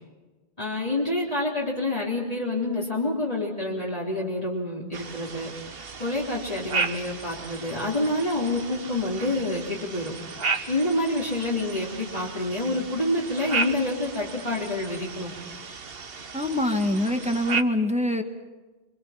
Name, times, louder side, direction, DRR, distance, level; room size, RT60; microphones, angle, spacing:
voice 1, 0.6-5.5 6.0-10.1 10.7-15.3, left 2 dB, 35° left, -5 dB, 3.8 m, -27 dB
sound 1, 4.9-17.6, right 4 dB, 65° right, 1.4 m, -34 dB
voice 2, 16.3-18.2, left 1 dB, 5° right, 5 dB, 1.7 m, -24 dB
27.5 x 24.5 x 5.9 m, 1.2 s
omnidirectional pair, 1.1 m